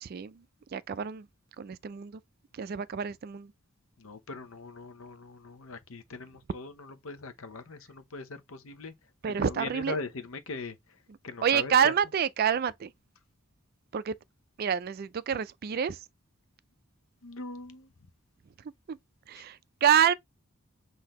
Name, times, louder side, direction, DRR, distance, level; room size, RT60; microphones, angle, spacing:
voice 1, 0.0-0.4 0.7-1.3 1.6-2.2 2.5-3.5 9.2-10.0 11.4-12.9 13.9-14.1 14.6-16.0 18.9-19.0 19.3-20.1, right 8 dB, 45° right, 0.3 m, -27 dB
voice 2, 4.0-8.9 9.2-10.8 11.2-11.9 17.2-17.9 19.3-19.4, left 3 dB, 75° left, 0.8 m, -40 dB
5.9 x 2.7 x 3.1 m
head